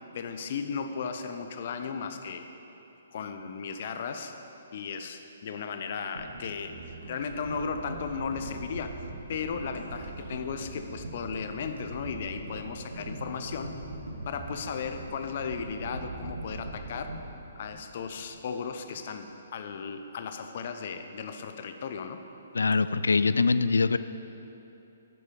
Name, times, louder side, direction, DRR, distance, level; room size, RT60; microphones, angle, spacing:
voice 1, 0.1-2.5 3.1-4.3 4.7-9.0 9.3-13.7 14.3-17.1 17.6-22.2, left 6 dB, 50° left, 7 dB, 0.8 m, -35 dB
sound 1, 6.2-18.5 18.8-18.9, right 2 dB, 80° right, 1.9 m, -41 dB
voice 2, 22.5-24.0, left 4 dB, 75° left, 13 dB, 0.4 m, -23 dB
12.0 x 6.6 x 5.2 m, 3.0 s
figure-of-eight pair, 130°, 0 cm